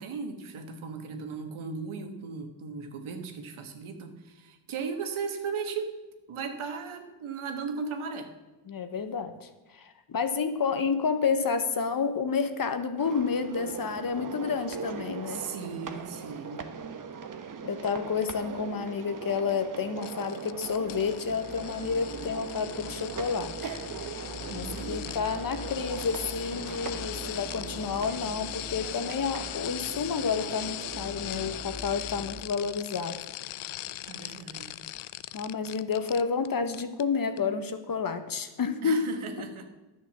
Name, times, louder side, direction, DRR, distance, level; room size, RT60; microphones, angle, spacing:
voice 1, 0.0-5.9 6.3-8.3 15.3-16.7 24.5-25.2 34.1-34.8 38.8-39.6, right 5 dB, 70° right, 6 dB, 1.5 m, -37 dB
voice 2, 8.7-15.4 17.6-23.7 24.5-33.2 35.3-39.0, left 5 dB, 45° left, 9 dB, 1.1 m, -30 dB
sound 1, 13.0-31.6, right 6 dB, 40° right, 1.0 m, -40 dB
sound 2, 20.0-36.5 36.7-37.0 37.4-37.5, left 15 dB, 75° left, 0.6 m, -40 dB
sound 3, 20.5-32.4, left 3 dB, 15° left, 1.0 m, -45 dB
10.5 x 6.4 x 7.2 m, 1.1 s
cardioid pair, 90°, 50 cm